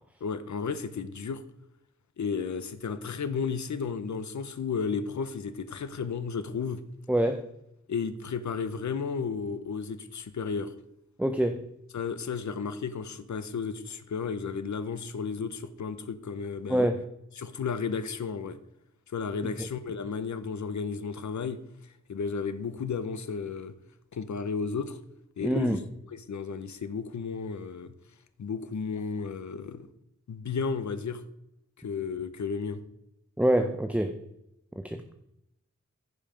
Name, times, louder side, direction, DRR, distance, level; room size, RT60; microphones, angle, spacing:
voice 1, 0.2-1.4 2.2-6.8 7.9-10.7 11.9-16.9 17.4-18.6 19.1-21.6 22.1-23.7 24.1-25.0 25.4-25.8 26.1-27.9 28.4-29.9 30.3-31.2 31.8-32.8, left 5 dB, 75° left, 11 dB, 0.8 m, -33 dB
voice 2, 7.1-7.4 11.2-11.7 16.7-17.0 19.6-19.7 25.4-25.8 33.4-34.1 34.8-35.0, right 1 dB, 5° right, 7 dB, 0.6 m, -25 dB
15.0 x 5.6 x 5.1 m, 0.83 s
wide cardioid pair, 120°, 29 cm